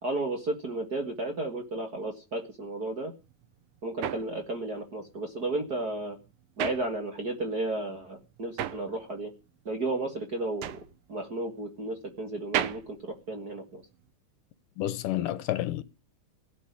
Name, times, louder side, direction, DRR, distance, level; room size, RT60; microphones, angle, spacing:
voice 1, 0.0-3.1 3.8-6.2 6.6-9.3 9.6-10.7 11.1-13.8, right 2 dB, 35° right, 1.8 m, -33 dB
sound 1, 3.2-7.5 7.8-14.1, right 12 dB, 85° right, 2.7 m, -37 dB
voice 2, 14.8-15.8, left 13 dB, 75° left, 2.4 m, -30 dB
17.0 x 7.5 x 9.9 m
omnidirectional pair, 3.8 m